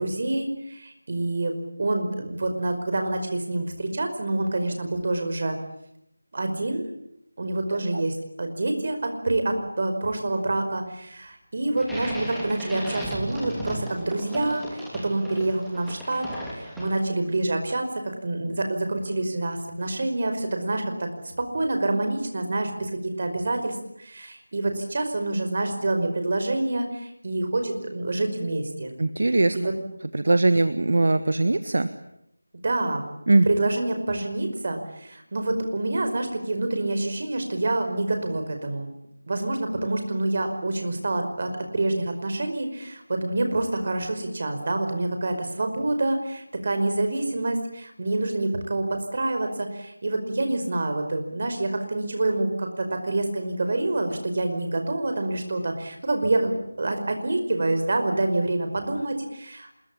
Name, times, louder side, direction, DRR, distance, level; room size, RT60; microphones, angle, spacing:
voice 1, 0.0-5.6 6.3-6.9 7.4-17.9 18.2-21.1 21.4-22.9 23.2-28.9 29.6-29.7 32.6-33.0 33.5-38.9 39.3-59.7, right 2 dB, 40° right, 6 dB, 5.2 m, -27 dB
sound 1, 11.8-17.3, equal, ahead, 2.9 m, -36 dB
voice 2, 29.0-29.6 30.1-31.9 33.3-33.5, right 2 dB, 60° right, 11 dB, 1.5 m, -20 dB
26.5 x 22.0 x 8.7 m, 0.79 s
figure-of-eight pair, 175°, 0 cm